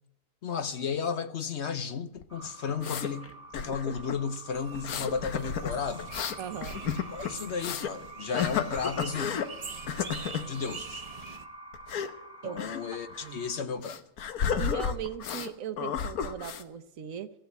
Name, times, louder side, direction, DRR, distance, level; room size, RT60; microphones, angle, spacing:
voice 1, 0.4-3.3 3.5-6.1 7.1-9.5 10.4-11.0 12.4-14.0, left 6 dB, 55° left, 1.0 m, -34 dB
sound 1, 2.2-3.1 3.5-4.2 4.7-7.9 8.3-9.5 9.9-10.5 11.7-12.1 12.6-12.8 13.1-13.3 13.8-15.5 15.8-16.6, left 8 dB, 85° left, 1.5 m, -32 dB
sound 2, 2.3-13.6, right 2 dB, 10° left, 0.9 m, -47 dB
sound 3, 4.5-11.4, right 5 dB, 30° right, 0.8 m, -44 dB
voice 2, 6.4-6.8 12.4-12.7 13.2-13.4 14.6-17.3, right 9 dB, 70° right, 1.2 m, -38 dB
15.5 x 8.0 x 9.3 m
omnidirectional pair, 1.5 m